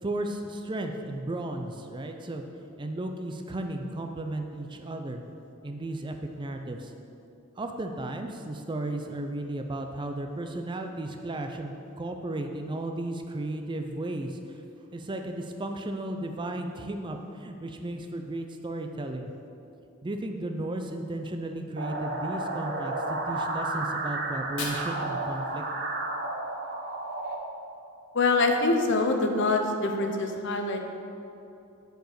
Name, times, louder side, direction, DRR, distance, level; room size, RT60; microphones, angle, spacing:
voice 1, 0.0-2.4 2.8-5.2 5.6-6.9 7.6-14.4 14.9-19.3 20.0-25.6, right 1 dB, 20° right, 5 dB, 0.4 m, -34 dB
sound 1, 21.8-27.3, right 2 dB, 50° right, 0.8 m, -32 dB
Fire, 24.3-26.3, left 3 dB, 80° left, 1.4 m, -41 dB
voice 2, 28.1-30.8, left 3 dB, 60° left, 4 dB, 0.8 m, -25 dB
6.5 x 4.9 x 6.4 m, 2.7 s
head